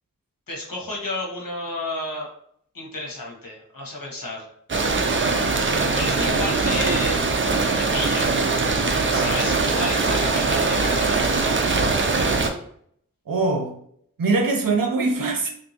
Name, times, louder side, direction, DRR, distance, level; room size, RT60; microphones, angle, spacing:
voice 1, 0.5-2.3 2.7-4.5 5.9-7.2 7.7-8.3 9.1-11.2, left 2 dB, 80° left, 1.1 m, -31 dB
sound 1, 4.7-12.5, right 3 dB, 35° right, 0.5 m, -21 dB
voice 2, 13.3-13.7 14.2-15.5, right 3 dB, 80° right, 0.7 m, -22 dB
3.3 x 2.7 x 2.8 m
wide cardioid pair, 50°, 33 cm